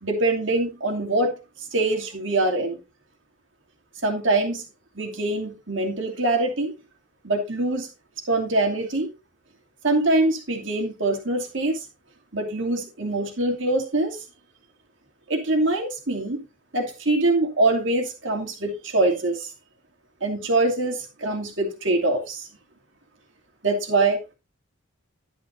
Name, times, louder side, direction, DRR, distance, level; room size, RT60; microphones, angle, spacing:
voice 1, 0.0-1.3 1.7-2.8 4.0-4.6 5.0-6.7 7.2-7.9 8.3-9.1 9.8-11.9 12.3-14.2 15.3-16.4 16.7-19.5 20.2-22.5 23.6-24.3, right 2 dB, 65° right, 2.7 m, -24 dB
11.0 x 10.0 x 2.7 m
head